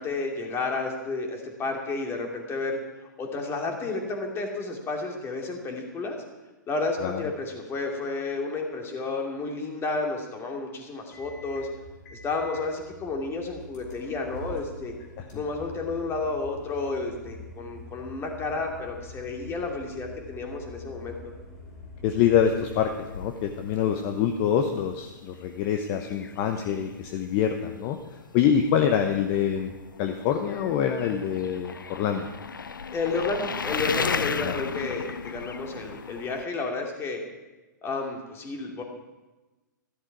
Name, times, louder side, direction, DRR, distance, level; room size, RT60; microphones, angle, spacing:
voice 1, 0.0-2.8 3.2-6.2 6.7-11.7 12.1-14.9 15.3-21.2 32.9-37.2 37.8-38.8, left 3 dB, 25° left, 2 dB, 2.5 m, -31 dB
sound 1, 11.1-22.9, left 1 dB, 60° left, 5.3 m, -45 dB
voice 2, 22.0-28.0 28.3-29.7 30.0-32.3 34.4-34.6, left 8 dB, 40° left, 6 dB, 1.0 m, -25 dB
sound 2, 22.4-36.4, left 5 dB, 85° left, 0.5 m, -36 dB
13.5 x 11.5 x 4.8 m, 1.1 s
hypercardioid pair, 115°, 11 cm